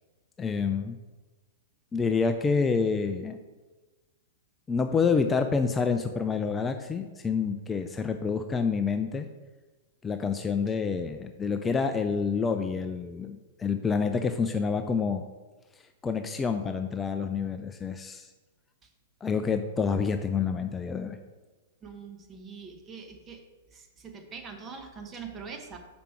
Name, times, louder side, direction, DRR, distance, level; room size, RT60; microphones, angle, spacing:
voice 1, 0.4-1.0 1.9-3.4 4.7-9.3 10.0-15.2 16.0-18.3 19.2-21.2, left 5 dB, 15° left, 7 dB, 0.4 m, -28 dB
voice 2, 21.8-23.4 23.7-25.8, right 5 dB, 25° right, 4 dB, 1.0 m, -43 dB
6.1 x 5.1 x 4.5 m, 1.2 s
hypercardioid pair, 105°, 0 cm